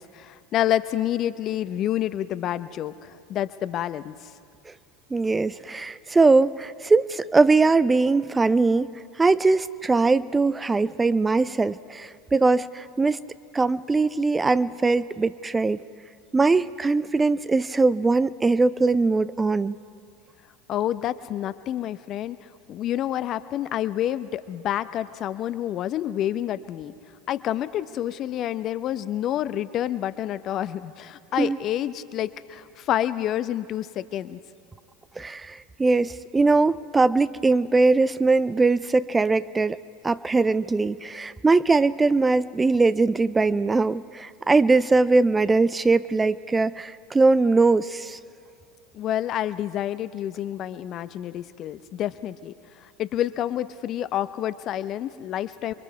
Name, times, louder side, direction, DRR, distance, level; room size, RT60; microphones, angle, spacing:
voice 1, 0.0-4.3 20.7-22.4 22.7-26.9 27.3-34.4 48.9-52.5 52.8-55.7, left 12 dB, 45° left, 14 dB, 0.7 m, -28 dB
voice 2, 5.1-8.9 9.2-13.2 13.5-15.8 16.3-19.8 31.4-31.6 35.2-39.8 40.0-48.2, right 3 dB, 15° right, 16 dB, 0.4 m, -21 dB
28.5 x 22.5 x 4.8 m, 2.2 s
figure-of-eight pair, 80°, 0 cm